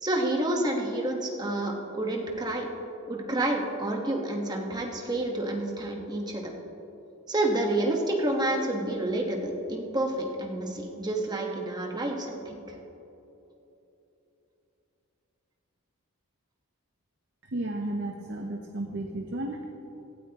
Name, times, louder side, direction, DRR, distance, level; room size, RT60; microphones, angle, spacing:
voice 1, 0.0-2.7 3.1-6.5 7.3-12.6, right 1 dB, 20° right, 1 dB, 1.3 m, -29 dB
voice 2, 17.4-19.6, right 1 dB, 50° right, 2 dB, 0.8 m, -33 dB
17.5 x 12.5 x 3.0 m, 3.0 s
head